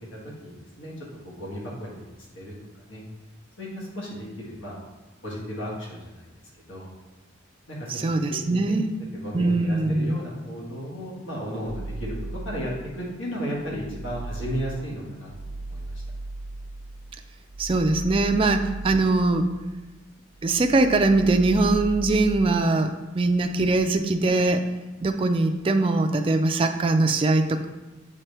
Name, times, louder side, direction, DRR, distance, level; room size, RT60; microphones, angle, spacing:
voice 1, 0.4-0.9 1.2-2.1 2.3-2.5 2.9-3.0 3.6-4.8 5.2-6.3 6.7-6.9 7.7-7.9 8.4-8.8 9.2-12.1 12.4-12.7 13.0-15.9, equal, 75° left, -5 dB, 1.6 m, -34 dB
voice 2, 7.9-8.9 9.3-10.2 17.6-19.5 20.4-24.6 25.0-27.6, right 2 dB, 25° right, 6 dB, 0.4 m, -22 dB
sound 1, 11.6-13.1 13.5-20.0 20.3-22.6, right 2 dB, 90° right, 0.6 m, -37 dB
7.5 x 3.8 x 3.3 m, 1.1 s
head